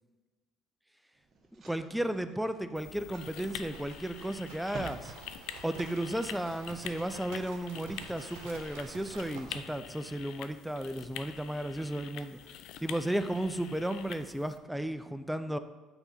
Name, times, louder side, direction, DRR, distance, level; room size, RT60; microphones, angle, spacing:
sound 1, 1.1-7.0, right 3 dB, 40° right, 1.4 m, -51 dB
voice 1, 1.6-5.1 5.6-12.4 12.8-15.6, right 1 dB, 5° right, 10 dB, 0.4 m, -34 dB
sound 2, 2.8-14.6, left 10 dB, 75° left, 0.4 m, -46 dB
Livestock farm animals working animals, 3.1-9.6, right 5 dB, 90° right, 0.8 m, -49 dB
5.9 x 3.9 x 5.9 m, 1.2 s
supercardioid pair, 95°, 0 cm